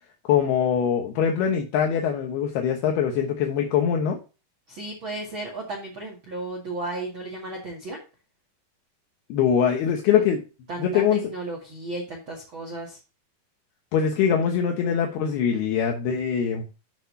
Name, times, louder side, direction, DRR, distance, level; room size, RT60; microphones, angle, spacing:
voice 1, 0.2-4.2 9.3-10.4 10.8-11.2 13.9-16.6, left 8 dB, 75° left, 2 dB, 3.1 m, -23 dB
voice 2, 4.7-8.0 10.1-10.3 10.7-13.0, right 2 dB, 40° right, 1 dB, 2.2 m, -34 dB
12.5 x 6.6 x 2.7 m, 0.31 s
omnidirectional pair, 4.8 m